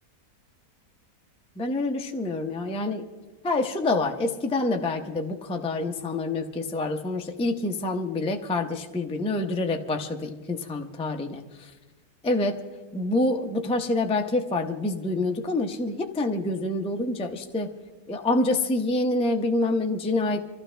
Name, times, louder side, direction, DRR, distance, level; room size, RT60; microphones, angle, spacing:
voice 1, 1.6-3.1 3.4-11.7 12.2-12.6 12.9-17.7 18.1-20.4, left 2 dB, 10° left, 3 dB, 0.4 m, -27 dB
25.0 x 15.0 x 3.4 m, 1.2 s
omnidirectional pair, 1.8 m